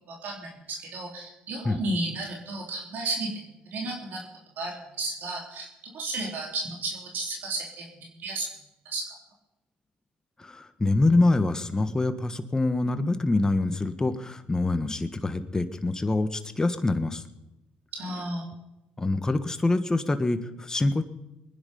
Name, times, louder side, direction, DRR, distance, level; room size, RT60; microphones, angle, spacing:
voice 1, 0.1-3.3 3.7-4.3 4.6-5.7 5.9-7.9 8.2-8.5 8.9-9.0 17.9-18.4, right 2 dB, 65° right, 0 dB, 3.6 m, -33 dB
voice 2, 10.4-17.2 19.0-21.0, left 2 dB, 20° left, 10 dB, 1.4 m, -25 dB
22.5 x 10.0 x 5.3 m, 0.96 s
supercardioid pair, 75°, 3 cm